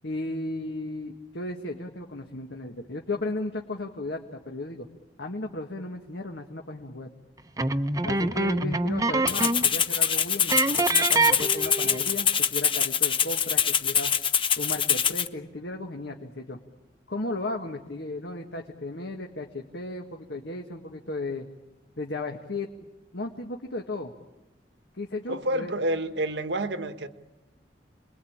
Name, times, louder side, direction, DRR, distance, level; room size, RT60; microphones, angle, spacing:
voice 1, 0.0-4.9 5.2-7.1 8.0-14.1 14.6-16.6 17.1-21.5 22.0-22.7 23.1-24.1 24.9-25.7, left 2 dB, 70° left, 1.8 m, -35 dB
sound 1, 7.6-9.8 10.0-10.1 10.5-12.1, right 2 dB, 20° right, 0.9 m, -25 dB
Rattle (instrument), 9.3-15.3, left 7 dB, 30° left, 0.9 m, -24 dB
voice 2, 25.3-27.1, right 1 dB, 70° right, 1.5 m, -28 dB
29.5 x 21.5 x 8.8 m
head